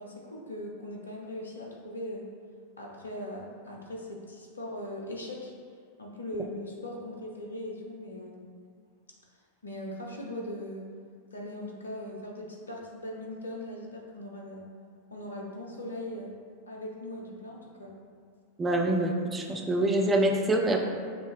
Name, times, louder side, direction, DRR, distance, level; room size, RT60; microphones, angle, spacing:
voice 1, 0.0-2.3 2.8-5.5 6.0-8.5 9.6-10.9 11.3-14.7 15.1-16.4 16.7-17.9, left 1 dB, 80° left, -1 dB, 0.7 m, -39 dB
voice 2, 18.6-20.8, right 1 dB, 15° right, 2 dB, 0.5 m, -25 dB
5.8 x 2.7 x 3.2 m, 2.2 s
figure-of-eight pair, 90°, 0 cm